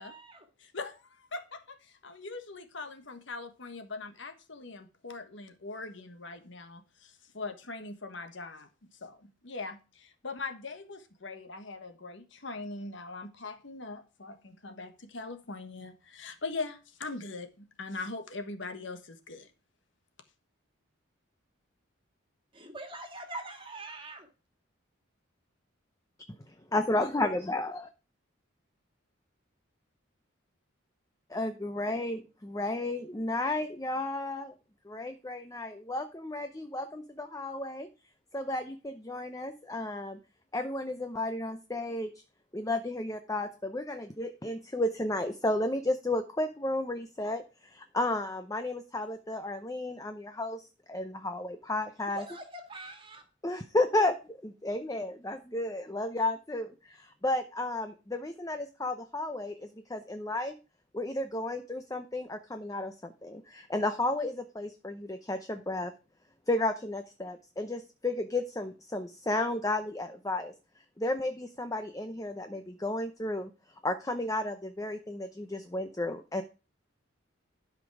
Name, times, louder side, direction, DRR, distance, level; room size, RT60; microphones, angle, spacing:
voice 1, 0.0-0.5 22.5-24.3 52.0-53.2, right 2 dB, 25° right, 2.0 m, -43 dB
voice 2, 0.6-8.7 9.0-19.5, left 3 dB, 60° left, 1.4 m, -41 dB
voice 3, 26.5-27.9 31.3-34.5 34.9-37.9 38.3-40.2 40.5-42.2 42.5-52.2 53.4-60.5 60.9-65.9 66.5-70.5 71.0-73.5 73.8-76.4, left 2 dB, 15° left, 0.6 m, -33 dB
12.5 x 5.3 x 4.8 m
head